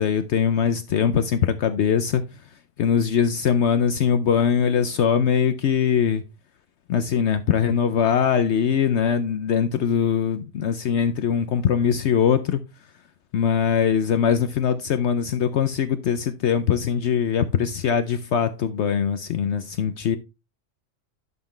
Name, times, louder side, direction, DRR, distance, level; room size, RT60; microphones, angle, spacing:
voice 1, 0.0-2.2 2.8-6.2 6.9-12.6 13.3-20.2, left 7 dB, 65° left, 0.9 m, -22 dB
11.0 x 5.9 x 3.2 m
omnidirectional pair, 1.3 m